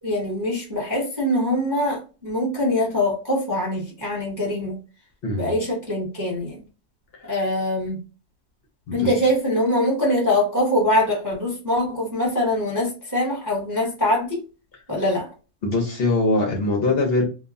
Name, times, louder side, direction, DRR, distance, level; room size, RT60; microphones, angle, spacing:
voice 1, 0.0-4.8 5.3-6.6 7.2-8.0 8.9-14.4 14.9-15.3, left 1 dB, 15° right, 0.8 m, -23 dB
voice 2, 5.2-5.5 7.2-7.3 8.9-9.1 15.6-17.2, left 2 dB, 55° left, 0.6 m, -22 dB
2.8 x 2.3 x 2.5 m
omnidirectional pair, 1.8 m